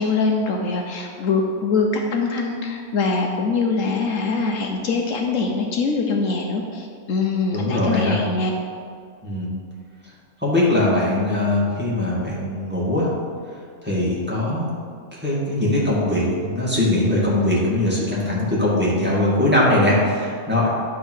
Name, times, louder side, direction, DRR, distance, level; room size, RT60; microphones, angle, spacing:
voice 1, 0.0-8.5, left 4 dB, 70° left, 2 dB, 1.1 m, -23 dB
voice 2, 7.5-8.2 9.2-9.5 10.4-13.1 13.8-14.8 15.2-20.7, left 1 dB, 5° right, -7 dB, 1.9 m, -21 dB
10.5 x 3.7 x 6.2 m, 2.3 s
omnidirectional pair, 1.5 m